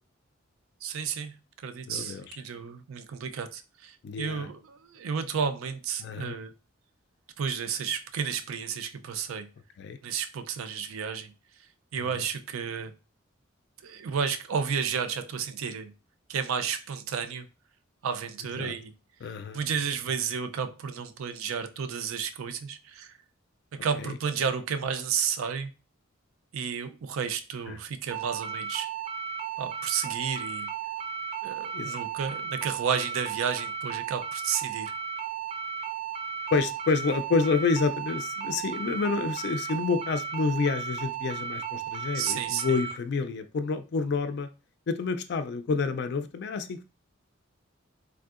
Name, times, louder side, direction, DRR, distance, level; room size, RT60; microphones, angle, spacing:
voice 1, 0.8-6.5 7.4-9.5 10.0-11.3 11.9-12.9 13.8-15.9 16.3-17.5 18.0-18.9 19.5-23.1 23.8-25.7 26.5-28.9 29.6-30.7 31.4-34.9 42.1-42.8, right 7 dB, 85° right, 0.4 m, -32 dB
voice 2, 1.9-2.3 4.0-4.5 6.0-6.4 9.8-10.0 12.0-12.1 18.6-18.7 19.2-19.6 24.1-24.2 27.7-27.8 31.7-31.9 36.5-44.5 44.9-46.8, left 4 dB, 55° left, 0.3 m, -28 dB
sound 1, 28.1-42.9, right 8 dB, 30° right, 0.5 m, -35 dB
3.4 x 2.6 x 2.4 m
head